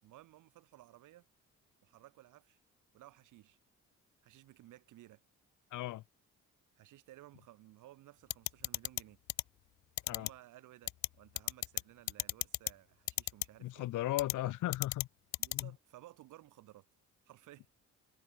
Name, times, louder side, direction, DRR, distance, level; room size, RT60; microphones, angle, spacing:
voice 1, 0.0-1.3 1.8-2.6 2.9-3.6 4.2-5.2 6.8-9.2 10.1-13.9 14.4-14.5 15.4-16.8 17.2-17.7, right 15 dB, 90° right, 5.0 m, -57 dB
voice 2, 5.7-6.0 10.1-10.3 13.6-15.1 15.5-15.7, left 15 dB, 85° left, 1.4 m, -36 dB
sound 1, 8.3-9.0 9.3-9.4 10.0-10.3 10.9-11.1 11.4-11.8 12.1-12.7 13.1-13.4 14.2-14.3 14.7-15.0 15.3-15.6, left 15 dB, 65° left, 0.6 m, -33 dB
cardioid pair, 90°, 30 cm